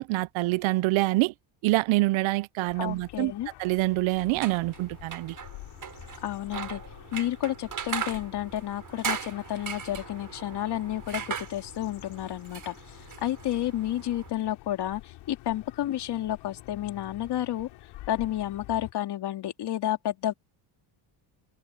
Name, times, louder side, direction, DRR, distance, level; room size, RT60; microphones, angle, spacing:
voice 1, 0.0-1.3 1.6-3.3 3.6-5.3, right 20 dB, 80° right, 0.8 m, -26 dB
sound 1, 2.7-18.9, left 17 dB, 85° left, 5.1 m, -48 dB
voice 2, 2.8-3.5 6.2-6.8 7.1-17.7 18.1-20.3, left 13 dB, 60° left, 2.7 m, -31 dB
sound 2, 4.2-14.3, right 7 dB, 45° right, 7.3 m, -39 dB
cardioid pair, 110°, 46 cm